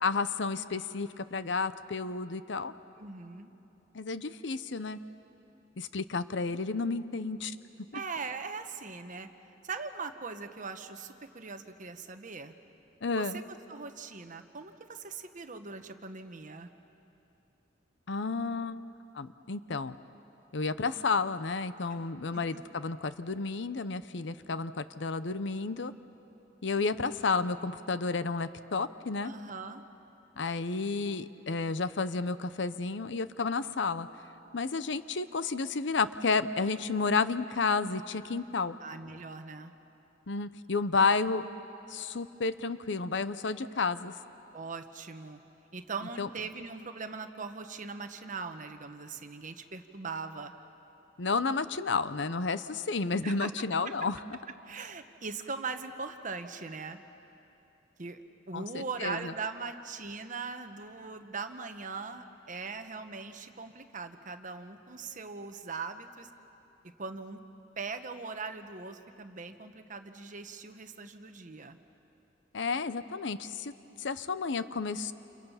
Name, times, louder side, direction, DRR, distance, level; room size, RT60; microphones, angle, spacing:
voice 1, 0.0-2.7 3.9-5.0 5.8-7.6 13.0-13.4 18.1-18.8 19.1-20.0 20.5-25.9 26.6-29.3 30.4-34.1 34.5-38.8 40.3-41.4 41.9-44.1 46.2-46.3 51.2-54.2 58.5-59.3 72.5-73.7 74.0-75.1, left 4 dB, 70° left, 13 dB, 0.7 m, -31 dB
voice 2, 3.0-3.5 7.9-9.3 9.6-12.5 13.1-13.4 13.7-16.7 22.3-22.6 29.2-29.8 38.8-39.7 44.5-45.4 45.7-50.5 53.2-53.5 53.8-53.9 54.6-57.0 58.0-66.3 67.0-67.4 67.8-71.8, right 4 dB, 45° right, 8 dB, 1.2 m, -40 dB
29.5 x 28.5 x 5.7 m, 3.0 s
head